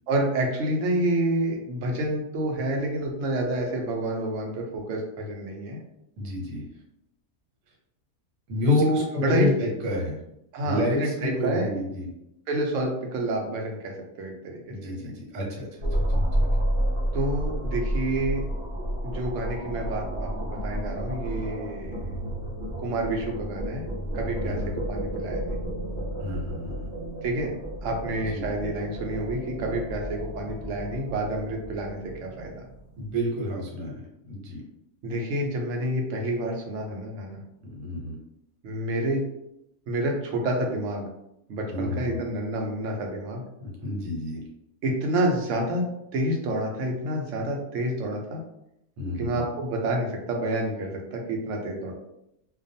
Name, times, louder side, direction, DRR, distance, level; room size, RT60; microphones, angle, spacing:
voice 1, 0.1-5.8 8.7-9.5 10.5-11.7 12.5-13.9 14.2-14.9 17.1-18.4 19.0-21.9 22.8-23.8 24.1-24.6 24.9-25.6 27.2-27.5 27.8-32.6 35.0-37.4 38.6-39.2 39.9-41.0 41.5-43.4 44.8-45.8 46.1-48.4 49.2-51.9, right 1 dB, 65° right, 1 dB, 0.9 m, -28 dB
voice 2, 6.2-6.7 8.5-10.2 10.6-12.1 14.7-15.8 16.4-16.5 24.4-24.7 26.2-26.9 28.2-28.4 33.0-33.9 34.3-34.6 37.6-38.2 41.7-42.2 43.6-44.4 49.0-49.4, left 1 dB, 80° right, -2 dB, 1.3 m, -29 dB
sound 1, 15.8-33.0, equal, 35° right, 0.8 m, -31 dB
2.4 x 2.2 x 2.6 m, 0.83 s
omnidirectional pair, 1.6 m